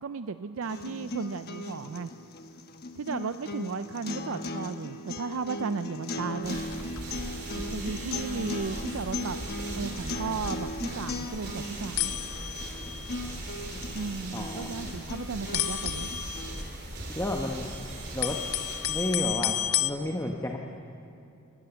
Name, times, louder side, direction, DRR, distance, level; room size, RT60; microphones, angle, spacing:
voice 1, 0.0-2.1 3.0-6.6 7.5-9.4 9.8-12.2 13.9-16.1, right 5 dB, 65° right, 11 dB, 0.5 m, -35 dB
sound 1, 0.6-16.6, left 2 dB, 45° left, 1.1 m, -38 dB
sound 2, 6.1-7.1 7.4-7.6 8.2-8.4 8.7-8.8 9.3-9.4 9.6-9.8 10.6-10.7 11.4-11.5 12.0-13.3 14.1-14.6 14.8-15.0 15.5-17.5 17.9-19.9, left 13 dB, 70° left, 0.8 m, -32 dB
sound 3, 6.4-19.2, right 1 dB, 45° right, 3.6 m, -39 dB
voice 2, 14.3-14.7 17.1-17.7 18.1-18.4 18.9-20.6, left 1 dB, 15° left, 1 dB, 1.1 m, -31 dB
24.5 x 19.5 x 7.0 m, 2.7 s
head